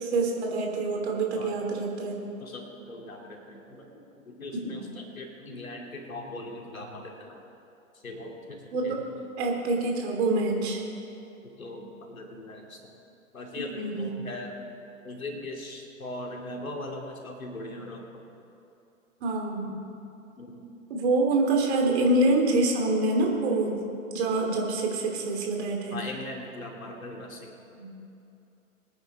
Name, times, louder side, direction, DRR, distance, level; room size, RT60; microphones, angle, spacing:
voice 1, 0.0-2.1 4.5-4.8 8.7-9.0 9.4-10.8 13.7-14.1 19.2-19.8 20.9-23.8 24.1-26.0 27.8-27.9, right 2 dB, 50° right, 1 dB, 2.8 m, -26 dB
voice 2, 2.2-3.9 4.2-7.4 8.0-9.0 11.4-12.9 13.3-14.5 15.0-18.2 20.4-20.7 25.9-27.5, left 2 dB, 75° left, 0 dB, 2.8 m, -40 dB
22.5 x 9.5 x 4.1 m, 2.8 s
figure-of-eight pair, 115°, 41 cm